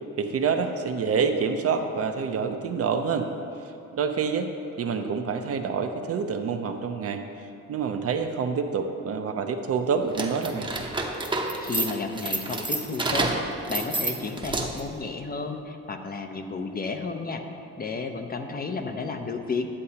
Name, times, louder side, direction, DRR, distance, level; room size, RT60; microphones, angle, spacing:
voice 1, 0.2-3.3 3.9-4.5 4.8-7.2 7.7-10.7, right 5 dB, 50° right, 6 dB, 0.6 m, -27 dB
sound 1, 10.1-14.9, right 2 dB, 15° right, 0.8 m, -29 dB
voice 2, 11.6-17.5 17.8-19.7, left 4 dB, 30° left, 5 dB, 0.6 m, -32 dB
9.7 x 7.6 x 2.8 m, 2.7 s
cardioid pair, 90°, 30 cm